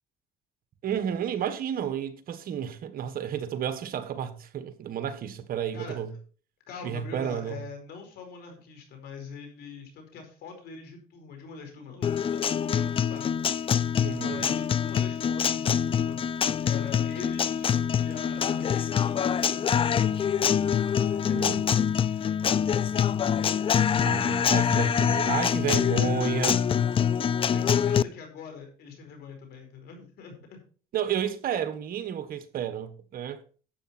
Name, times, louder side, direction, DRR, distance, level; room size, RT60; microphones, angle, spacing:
voice 1, 0.8-6.1 6.8-7.6 14.0-14.5 21.3-21.6 24.0-26.7 30.9-33.4, right 9 dB, 60° right, 1.5 m, -31 dB
voice 2, 5.7-6.2 6.7-13.4 14.2-16.2 16.6-20.5 21.0-21.5 22.2-22.4 26.7-26.9 27.4-30.6, left 5 dB, 70° left, 4.8 m, -43 dB
Guitar, 12.0-28.0, left 8 dB, 30° left, 0.4 m, -25 dB
11.5 x 8.6 x 4.4 m
cardioid pair, 110°, 17 cm